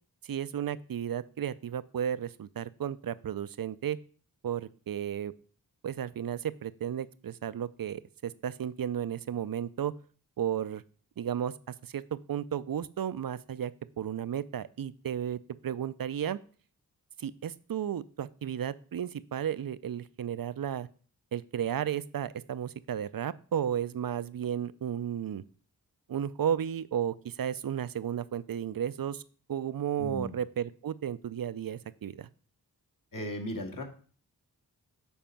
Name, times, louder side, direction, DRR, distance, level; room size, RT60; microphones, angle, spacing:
voice 1, 0.2-4.0 4.4-5.3 5.8-9.9 10.4-10.8 11.2-11.5 11.8-13.7 14.0-16.4 17.2-20.9 21.3-25.4 26.1-29.2 29.5-32.3, right 9 dB, 60° right, 16 dB, 0.5 m, -33 dB
voice 2, 30.0-30.3 33.1-33.8, equal, 60° left, 2 dB, 1.9 m, -36 dB
7.3 x 4.3 x 5.7 m, 0.42 s
cardioid pair, 45°, 39 cm